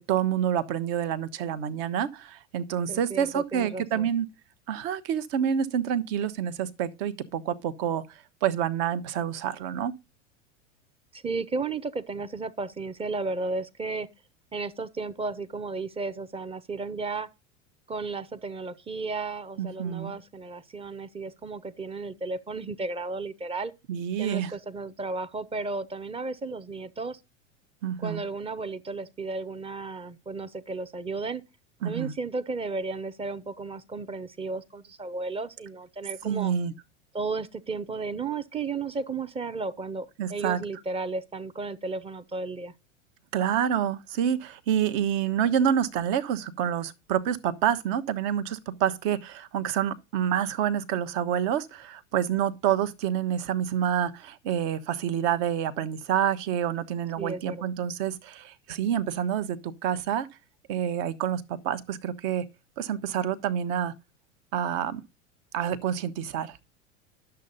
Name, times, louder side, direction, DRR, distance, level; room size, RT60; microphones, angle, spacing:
voice 1, 0.0-4.3 4.7-8.0 8.4-9.9 19.6-20.1 23.9-24.5 27.8-28.2 31.8-32.1 36.2-36.7 40.2-40.6 43.3-60.3 60.7-62.4 62.8-63.9 64.5-65.0 65.5-66.6, right 9 dB, 50° right, 1.0 m, -28 dB
voice 2, 2.9-4.1 11.1-14.1 14.5-17.3 17.9-23.7 24.2-27.2 28.0-31.5 31.8-36.5 37.1-42.7 57.2-57.6, right 3 dB, 15° right, 0.7 m, -34 dB
10.5 x 6.8 x 4.0 m
hypercardioid pair, 90°, 37 cm